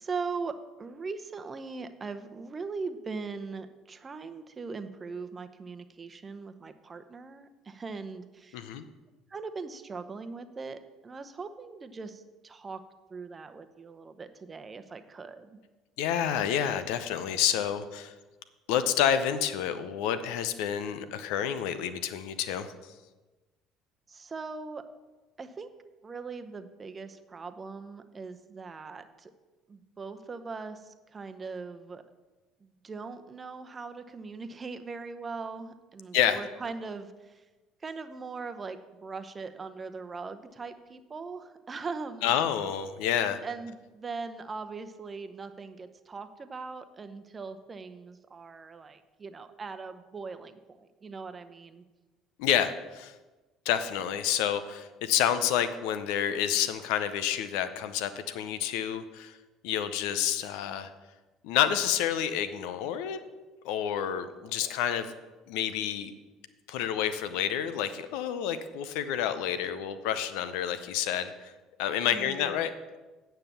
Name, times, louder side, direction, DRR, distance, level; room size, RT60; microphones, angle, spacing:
voice 1, 0.0-8.7 9.3-12.8 13.1-15.6 24.1-24.8 25.4-25.7 26.0-29.3 29.7-32.0 32.6-37.4 37.8-42.3 43.4-51.8 72.0-72.7, right 4 dB, 30° right, 9 dB, 0.8 m, -40 dB
voice 2, 8.5-8.8 16.0-18.1 18.7-22.9 36.1-36.4 42.2-43.4 52.4-53.1 53.7-59.4 59.6-60.9 61.4-63.2 63.6-65.1 65.5-66.1 66.7-71.5 71.8-72.7, left 9 dB, 75° left, 12 dB, 0.6 m, -29 dB
9.2 x 5.7 x 6.9 m, 1.2 s
hypercardioid pair, 65°, 0 cm